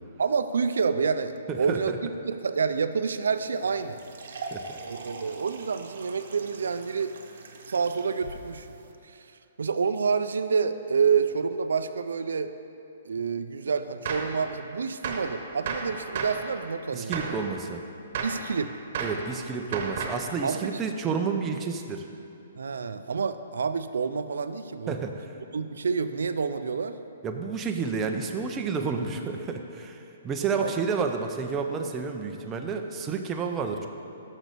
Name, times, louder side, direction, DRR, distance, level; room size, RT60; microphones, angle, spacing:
voice 1, 0.2-4.0 4.8-7.1 7.7-8.7 9.0-9.3 9.6-12.5 13.0-17.4 18.2-18.7 20.4-20.8 22.6-25.0 25.5-27.0 30.6-30.7, right 5 dB, 85° right, 10 dB, 0.4 m, -28 dB
voice 2, 1.5-2.0 4.5-4.8 16.9-17.8 19.0-22.0 24.9-25.3 27.2-33.9, right 5 dB, 15° right, 3 dB, 0.5 m, -30 dB
sound 1, 3.3-8.9, right 3 dB, 65° right, 0.9 m, -43 dB
Gunshot gunfire, 14.0-14.4 15.0-15.3 15.6-16.4 17.1-17.4 18.1-18.4 18.9-19.2 19.7-20.3, right 5 dB, 45° right, 1.1 m, -32 dB
6.1 x 6.1 x 6.7 m, 2.7 s
hypercardioid pair, 160°, 0 cm